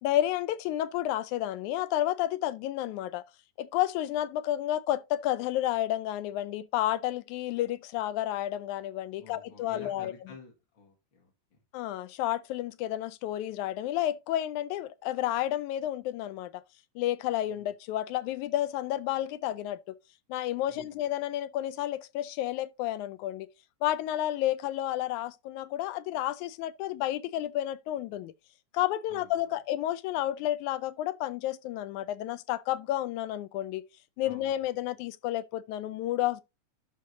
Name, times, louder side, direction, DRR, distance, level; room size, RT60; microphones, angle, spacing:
voice 1, 0.0-3.2 3.6-10.1 11.7-16.5 17.0-19.8 20.3-23.5 23.8-28.3 28.7-33.8 34.2-36.4, left 13 dB, 80° left, 2.0 m, -31 dB
voice 2, 9.2-11.3 17.5-17.7 20.7-21.0 29.1-29.3 34.2-34.6, left 4 dB, 45° left, 2.2 m, -50 dB
11.5 x 3.8 x 3.9 m
omnidirectional pair, 3.5 m